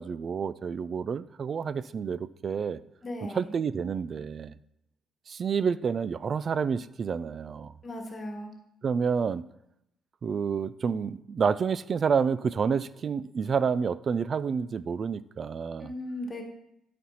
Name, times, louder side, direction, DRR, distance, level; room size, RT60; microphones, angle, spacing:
voice 1, 0.0-2.8 3.3-4.5 5.3-7.7 8.8-9.5 10.2-15.9, right 6 dB, 50° right, 17 dB, 0.4 m, -29 dB
voice 2, 3.0-3.5 7.8-8.5 15.8-16.4, left 1 dB, 35° left, 3 dB, 1.5 m, -37 dB
12.0 x 4.3 x 5.6 m, 0.82 s
cardioid pair, 90°, 0 cm